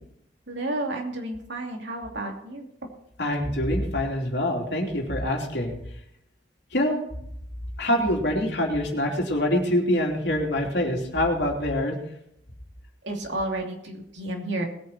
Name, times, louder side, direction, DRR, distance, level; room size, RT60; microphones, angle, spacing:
voice 1, 0.5-2.7 13.0-14.6, right 1 dB, 80° right, 1 dB, 2.8 m, -31 dB
voice 2, 3.2-5.8 6.7-7.0 7.8-11.9, left 1 dB, 70° left, 1 dB, 3.1 m, -25 dB
20.0 x 8.6 x 4.4 m, 0.73 s
head